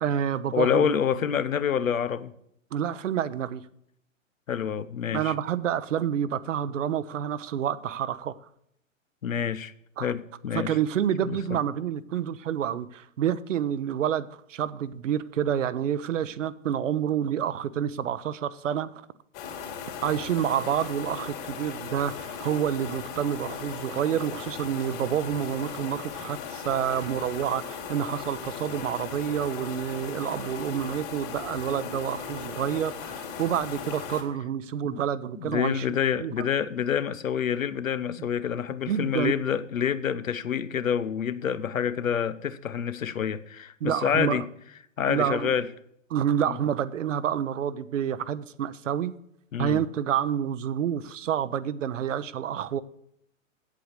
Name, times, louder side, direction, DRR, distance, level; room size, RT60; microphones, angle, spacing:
voice 1, 0.0-0.9 2.7-3.6 5.1-8.4 10.0-10.1 10.5-19.1 20.0-35.9 36.2-36.4 38.9-39.3 43.8-44.4 45.1-45.5 46.1-49.1 49.6-52.8, right 9 dB, 70° right, 0.7 m, -28 dB
voice 2, 0.5-2.3 4.5-5.3 9.2-9.7 10.0-10.8 11.2-11.6 34.8-35.0 35.3-44.5 45.0-45.7 46.4-46.6 49.5-49.8, left 8 dB, 85° left, 0.7 m, -27 dB
sound 1, 19.3-34.2, left 6 dB, 45° left, 2.6 m, -37 dB
8.4 x 7.9 x 6.5 m
figure-of-eight pair, 110°, 39 cm